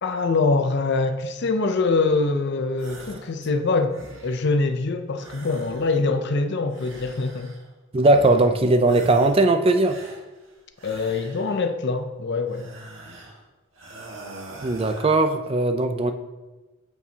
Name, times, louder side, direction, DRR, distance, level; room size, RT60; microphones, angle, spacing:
voice 1, 0.0-7.5 10.8-12.6, left 3 dB, 60° left, 0.6 m, -24 dB
sound 1, 2.8-3.4 3.7-4.6 5.1-6.2 6.7-7.7 8.0-8.6 8.8-9.5 9.8-11.7 12.5-13.4 13.7-15.3, right 1 dB, 80° right, 1.6 m, -44 dB
voice 2, 7.9-10.0 14.6-16.1, right 2 dB, 30° right, 0.5 m, -19 dB
13.5 x 4.6 x 2.8 m
head